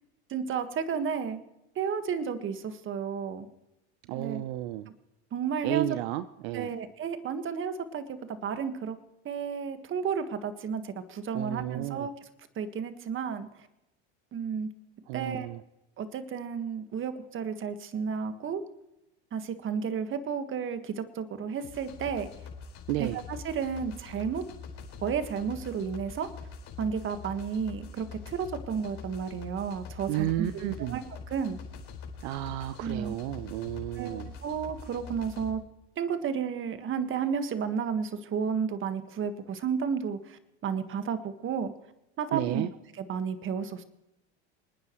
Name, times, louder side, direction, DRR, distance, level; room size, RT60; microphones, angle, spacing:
voice 1, 0.3-1.4 1.7-3.5 4.1-4.4 5.3-5.8 6.5-9.0 9.2-12.1 12.6-13.5 14.3-14.7 15.1-15.5 16.0-18.6 19.3-22.3 23.0-24.4 25.0-26.3 26.8-31.6 32.8-33.1 33.9-35.6 36.0-41.7 42.2-42.7 43.0-43.8, right 6 dB, 35° right, 9 dB, 1.6 m, -32 dB
voice 2, 4.1-4.9 5.6-6.7 11.3-12.1 15.1-15.6 22.9-23.2 30.1-31.0 32.2-34.3 42.3-42.7, right 14 dB, 70° right, 13 dB, 0.8 m, -32 dB
sound 1, 21.6-35.5, left 5 dB, 50° left, 5.0 m, -44 dB
28.0 x 9.6 x 3.1 m, 0.93 s
supercardioid pair, 105°, 34 cm